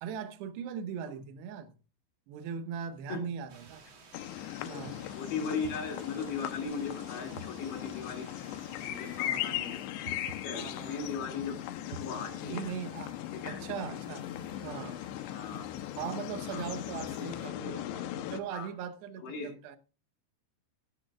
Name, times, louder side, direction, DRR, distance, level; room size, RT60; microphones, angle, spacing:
voice 1, 0.0-1.8 2.3-3.9 4.6-5.1 9.2-9.5 10.1-10.2 10.5-11.1 12.4-13.2 13.4-14.3 14.6-15.0 16.0-19.8, right 7 dB, 75° right, 2.8 m, -40 dB
sound 1, 3.5-9.3, right 4 dB, 45° right, 3.6 m, -55 dB
sound 2, 4.1-18.4, left 13 dB, 80° left, 3.0 m, -38 dB
voice 2, 5.0-8.3 8.8-9.8 10.4-11.6 11.9-12.7 13.3-13.6 15.3-15.7 16.5-16.7 18.5-18.7 19.2-19.5, left 5 dB, 50° left, 3.9 m, -38 dB
sound 3, 8.4-17.5, equal, ahead, 6.3 m, -61 dB
17.5 x 13.0 x 2.4 m
omnidirectional pair, 5.2 m